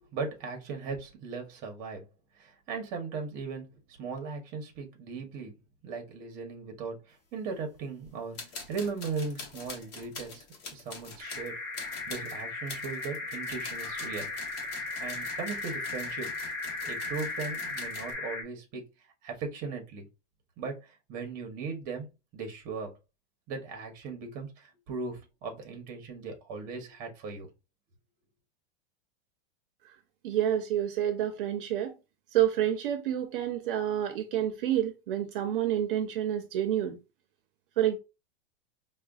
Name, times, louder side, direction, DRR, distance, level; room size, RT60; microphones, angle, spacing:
voice 1, 0.1-2.0 2.4-3.7 4.0-5.5 5.8-8.4 8.7-10.4 10.7-11.6 12.1-14.3 15.0-16.3 16.8-18.9 19.2-20.0 20.6-22.1 22.3-22.9 23.5-27.5, right 4 dB, 30° right, 0.9 m, -38 dB
sound 1, 8.0-8.1 8.3-18.1, left 4 dB, 45° left, 1.1 m, -45 dB
sound 2, 11.2-18.4, left 3 dB, 5° left, 0.3 m, -36 dB
voice 2, 30.2-31.9 32.3-37.0 37.8-38.0, right 11 dB, 60° right, 0.7 m, -28 dB
4.8 x 2.2 x 2.3 m
supercardioid pair, 160°, 30 cm